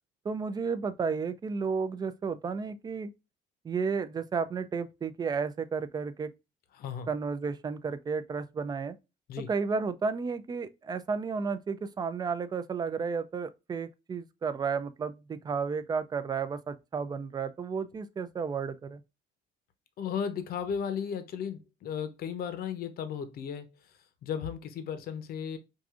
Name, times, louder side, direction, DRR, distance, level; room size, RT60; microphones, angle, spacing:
voice 1, 0.2-3.1 3.6-6.3 7.1-9.0 9.5-19.0, right 5 dB, 25° right, 0.4 m, -32 dB
voice 2, 6.7-7.1 9.3-9.5 20.0-23.7 24.2-25.6, left 7 dB, 65° left, 0.7 m, -35 dB
4.7 x 2.5 x 2.4 m
cardioid pair, 110°, 17 cm